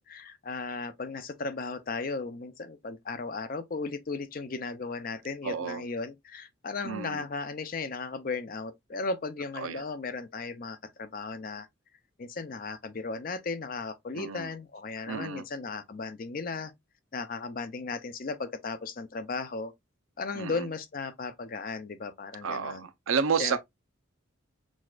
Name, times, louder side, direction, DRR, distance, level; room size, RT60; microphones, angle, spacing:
voice 1, 0.0-11.7 12.2-16.7 17.1-19.7 20.2-22.9 23.4-23.6, left 4 dB, 40° left, 0.5 m, -36 dB
voice 2, 5.4-5.8 6.8-7.2 9.6-9.8 14.1-14.5 15.1-15.4 20.4-20.5 22.4-23.6, right 6 dB, 80° right, 0.6 m, -30 dB
6.2 x 2.4 x 2.3 m
head